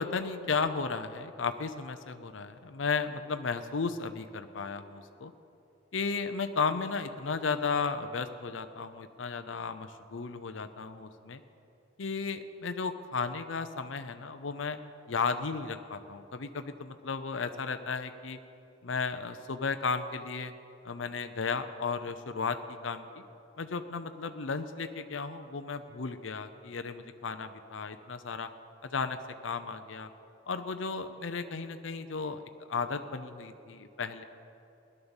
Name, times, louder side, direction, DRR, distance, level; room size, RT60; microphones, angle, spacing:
voice 1, 0.0-5.3 5.9-11.4 12.0-14.8 15.1-18.4 18.8-20.5 20.8-23.2 23.6-28.5 28.8-30.1 30.5-32.4 32.7-34.2, left 5 dB, 80° left, 8 dB, 0.7 m, -34 dB
17.0 x 11.0 x 7.2 m, 2.8 s
head